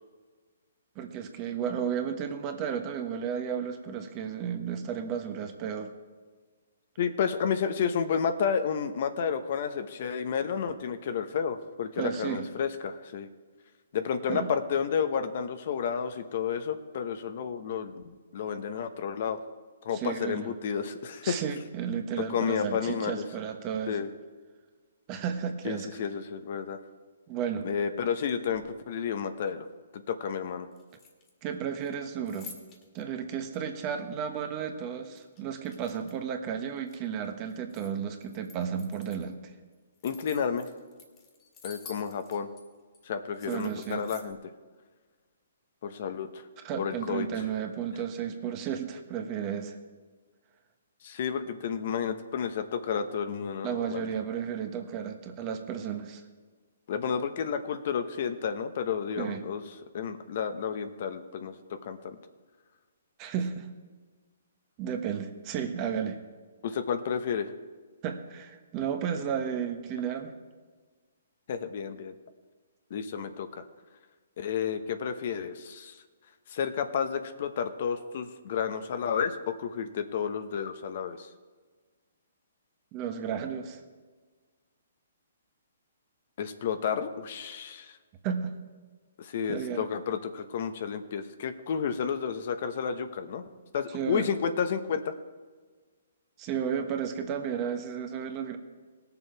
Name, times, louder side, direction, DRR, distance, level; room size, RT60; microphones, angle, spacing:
voice 1, 0.9-5.9 12.0-12.5 14.3-14.5 19.9-20.5 21.2-24.0 25.1-25.9 27.3-27.7 31.4-32.5 32.9-39.4 43.4-44.0 46.6-49.7 53.6-56.2 59.2-59.4 63.2-63.7 64.8-66.2 68.0-70.3 82.9-83.8 88.2-88.5 89.5-89.9 93.9-94.3 96.4-98.6, right 8 dB, 30° right, 6 dB, 1.2 m, -33 dB
voice 2, 7.0-13.3 13.9-19.4 19.8-21.4 22.3-23.2 23.9-24.1 25.6-26.8 27.6-29.6 29.9-30.7 40.0-40.7 41.6-42.5 43.0-44.4 45.8-46.4 46.8-47.3 51.0-54.1 56.9-59.6 59.9-62.2 66.6-67.5 71.5-72.1 72.9-73.7 74.4-76.0 76.5-81.3 86.4-88.0 89.2-93.5 93.7-95.1, left 7 dB, 55° left, 9 dB, 1.0 m, -31 dB
sound 1, 28.1-28.8 30.7-31.5 31.8-33.0 33.5-33.6 35.1-36.3 36.7-37.9 38.2-39.3 39.7-42.6 42.9-43.0 43.3-44.3, left 5 dB, 25° left, 2.0 m, -51 dB
18.0 x 7.0 x 4.6 m, 1.4 s
hypercardioid pair, 140°, 0 cm